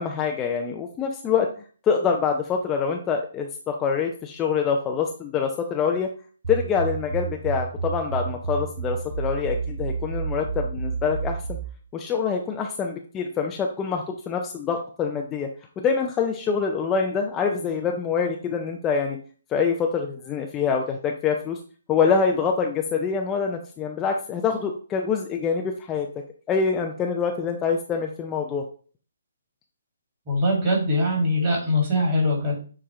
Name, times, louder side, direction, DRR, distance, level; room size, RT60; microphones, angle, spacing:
voice 1, 0.0-1.5 1.8-6.1 6.5-11.6 11.9-15.5 15.8-19.2 19.5-21.6 21.9-26.1 26.5-28.6, left 6 dB, 15° left, 2 dB, 0.4 m, -25 dB
sound 1, 6.4-11.7, right 5 dB, 60° right, 0.8 m, -30 dB
voice 2, 30.3-32.6, left 1 dB, 25° right, -3 dB, 2.1 m, -22 dB
6.9 x 2.4 x 3.1 m, 0.40 s
figure-of-eight pair, 135°, 0 cm